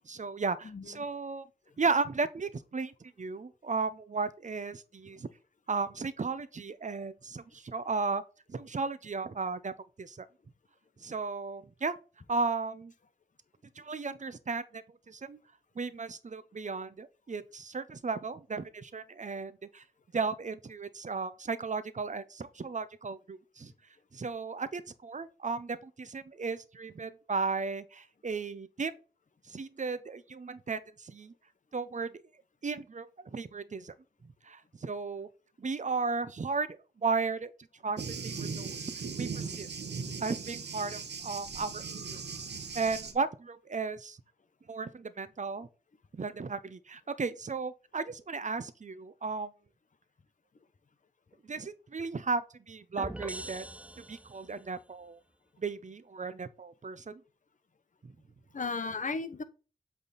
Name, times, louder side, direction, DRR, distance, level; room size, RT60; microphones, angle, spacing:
voice 1, 0.1-1.5 1.8-5.3 5.7-8.2 8.5-10.3 11.0-11.9 12.3-12.9 13.8-15.4 15.8-19.8 20.1-23.7 24.1-28.9 29.5-31.3 31.7-32.2 32.6-33.9 34.4-35.3 35.6-37.5 37.8-38.9 39.2-39.7 40.2-42.2 42.7-44.2 44.7-45.7 46.1-49.5 51.4-53.6 54.0-55.2 55.6-57.2 58.0-58.1, right 4 dB, 45° right, 0.7 m, -35 dB
voice 2, 0.6-1.0 1.7-1.8 5.1-5.2 58.5-59.4, left 4 dB, 45° left, 0.9 m, -35 dB
Thunder, 38.0-43.1, right 5 dB, 80° right, 1.1 m, -38 dB
sound 1, 53.0-54.7, right 1 dB, 5° right, 0.4 m, -42 dB
8.0 x 3.6 x 4.0 m
cardioid pair, 65°, 17 cm